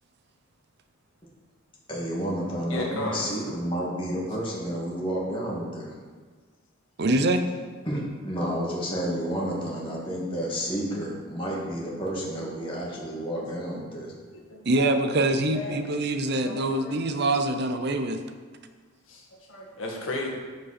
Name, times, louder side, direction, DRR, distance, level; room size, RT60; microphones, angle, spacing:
voice 1, 1.9-5.9 7.9-14.1, equal, 25° left, -5 dB, 2.1 m, -30 dB
voice 2, 2.7-3.3 14.5-15.8 16.4-17.0 19.1-20.3, left 2 dB, 70° left, -1 dB, 1.9 m, -35 dB
voice 3, 7.0-7.5 14.6-18.2, right 2 dB, 55° right, 8 dB, 0.6 m, -24 dB
11.0 x 5.3 x 4.3 m, 1.5 s
head